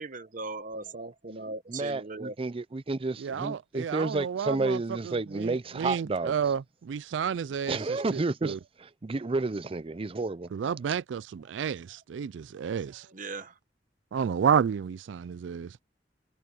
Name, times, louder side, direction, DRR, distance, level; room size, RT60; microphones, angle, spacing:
voice 1, 0.0-2.4 12.9-13.6, right 3 dB, 45° right, 1.1 m, -39 dB
voice 2, 1.7-6.3 7.7-10.5, right 3 dB, 30° right, 0.5 m, -31 dB
voice 3, 3.2-8.6 10.5-13.1 14.1-15.8, right 7 dB, 85° right, 0.4 m, -31 dB
head